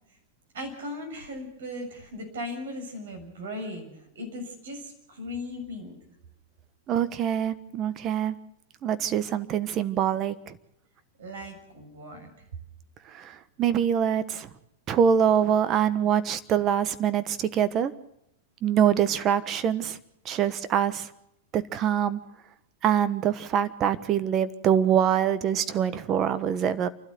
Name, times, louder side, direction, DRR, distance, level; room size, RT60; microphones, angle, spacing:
voice 1, 0.5-6.0 11.2-12.3, left 1 dB, 75° right, 5 dB, 7.1 m, -38 dB
voice 2, 6.9-8.4 8.8-10.6 13.1-14.5 14.9-17.9 18.6-20.0 20.2-21.1 21.5-22.2 22.8-26.9, right 9 dB, 35° right, 13 dB, 1.3 m, -24 dB
28.0 x 12.5 x 7.8 m, 0.82 s
hypercardioid pair, 110°, 0 cm